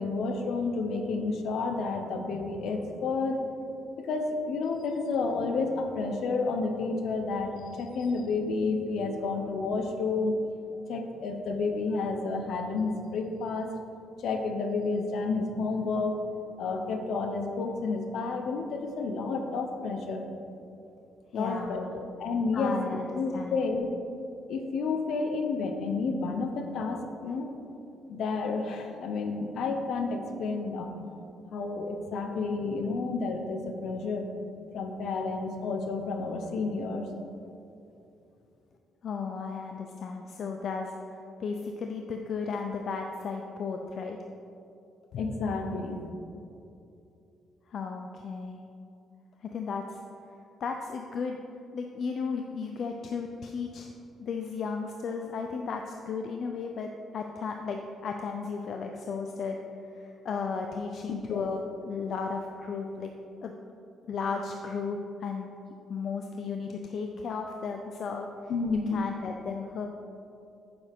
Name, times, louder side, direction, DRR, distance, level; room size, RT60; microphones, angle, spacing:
voice 1, 0.0-3.4 4.0-10.4 10.9-13.7 14.2-16.2 16.6-20.2 21.3-24.0 24.5-27.5 28.1-30.9 31.5-34.3 34.7-37.1 45.1-46.0 61.3-61.4 68.5-69.0, left 3 dB, 70° left, 5 dB, 0.8 m, -30 dB
voice 2, 21.3-22.0 22.5-23.6 39.0-44.2 47.7-48.6 49.4-50.0 50.6-51.4 51.7-53.9 54.2-59.6 59.9-63.1 63.4-63.5 64.0-65.5 65.9-68.3 68.9-69.9, left 5 dB, 55° left, 3 dB, 0.5 m, -35 dB
9.0 x 6.9 x 3.6 m, 2.7 s
cardioid pair, 130°, 0 cm